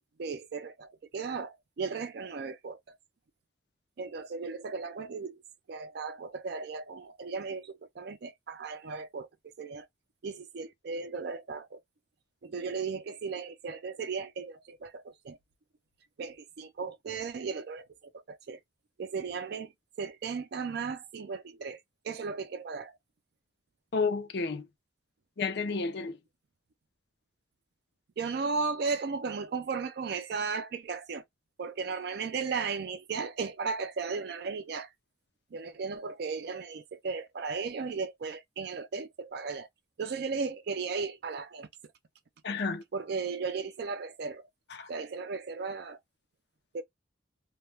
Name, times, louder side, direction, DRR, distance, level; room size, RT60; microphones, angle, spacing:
voice 1, 0.2-3.0 4.0-5.4 5.7-9.3 9.6-9.9 10.2-11.8 12.4-15.4 16.2-18.6 19.0-19.7 20.0-21.8 22.0-23.0 28.2-31.2 31.6-34.9 35.5-39.7 40.0-41.7 42.9-44.5 44.9-46.0 46.7-46.8, right 5 dB, 55° right, 0.4 m, -36 dB
voice 2, 23.9-24.7 25.4-26.2 42.4-42.8 44.7-44.9, left 4 dB, 60° left, 0.5 m, -31 dB
2.2 x 2.1 x 3.1 m
head